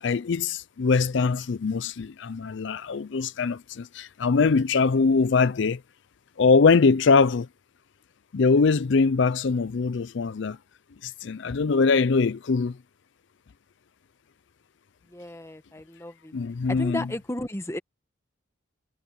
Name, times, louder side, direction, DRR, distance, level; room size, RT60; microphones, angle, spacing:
voice 1, 0.0-5.8 6.4-7.5 8.3-10.6 11.0-12.8 16.3-17.1, left 4 dB, 65° left, 0.5 m, -22 dB
voice 2, 15.1-16.3 16.8-17.8, left 1 dB, 15° left, 1.3 m, -34 dB
head